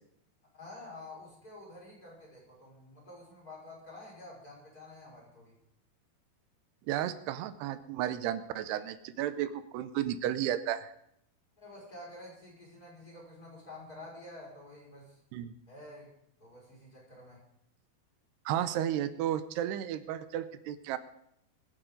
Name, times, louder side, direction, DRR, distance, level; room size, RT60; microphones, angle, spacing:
voice 1, 0.5-5.5 11.6-15.2 15.7-16.1 16.4-17.4, left 2 dB, 20° left, -5 dB, 5.8 m, -49 dB
voice 2, 6.9-10.9 15.3-15.5 18.5-21.0, right 11 dB, 80° right, 12 dB, 2.8 m, -33 dB
24.0 x 10.5 x 3.9 m, 0.74 s
omnidirectional pair, 4.8 m